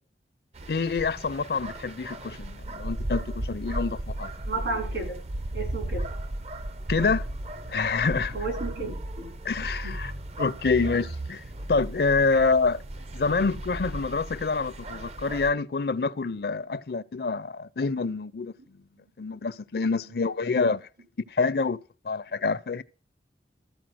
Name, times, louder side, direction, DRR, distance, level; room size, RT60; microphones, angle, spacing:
sound 1, 0.5-15.5, right 1 dB, 35° right, 0.5 m, -35 dB
voice 1, 0.7-4.3 6.9-7.3 7.7-8.3 9.4-10.1 10.4-11.4 11.7-12.8 13.1-18.5 19.2-20.9 21.3-21.8 22.0-22.8, left 4 dB, 60° left, 0.5 m, -26 dB
voice 2, 4.4-5.2 5.5-6.1 8.3-9.3 9.8-9.9 12.3-12.4 20.0-20.1 20.6-20.8, right 3 dB, 75° right, 4.6 m, -33 dB
14.0 x 4.6 x 7.7 m
head